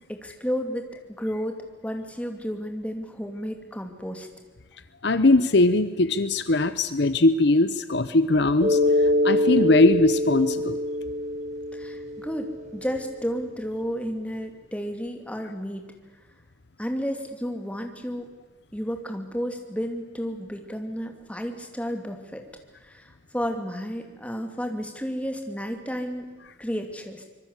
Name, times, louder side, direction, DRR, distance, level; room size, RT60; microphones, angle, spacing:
voice 1, 0.1-1.6 1.8-4.3 11.7-15.8 16.8-18.3 18.7-22.4 22.8-26.3 26.6-27.2, equal, 5° left, 4 dB, 2.7 m, -32 dB
voice 2, 5.0-8.8 9.2-10.8, left 2 dB, 55° left, 13 dB, 0.9 m, -20 dB
Mallet percussion, 8.6-13.0, left 1 dB, 35° right, 5.2 m, -25 dB
25.5 x 22.5 x 8.2 m, 1.3 s
head